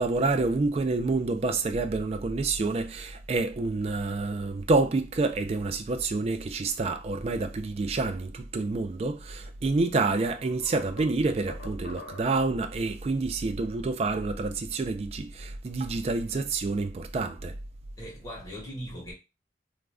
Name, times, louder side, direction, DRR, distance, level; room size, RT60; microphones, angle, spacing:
voice 1, 0.0-17.6, right 3 dB, 35° right, 0.3 m, -28 dB
sound 1, 9.4-9.5 10.0-12.5, left 3 dB, 85° left, 0.7 m, -47 dB
voice 2, 18.0-19.1, equal, 20° left, 1.2 m, -39 dB
2.4 x 2.1 x 3.4 m
head